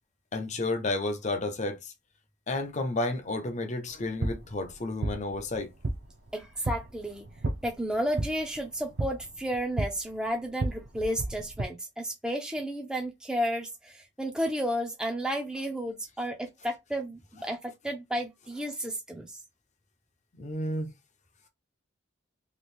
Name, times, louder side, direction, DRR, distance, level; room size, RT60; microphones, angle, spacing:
voice 1, 0.3-1.9 2.5-5.7 20.4-20.9, left 2 dB, 40° left, 0.6 m, -31 dB
sound 1, 3.9-11.6, right 2 dB, 55° right, 0.6 m, -35 dB
voice 2, 6.3-7.2 7.6-19.4, equal, 5° right, 0.4 m, -32 dB
2.9 x 2.4 x 3.2 m
head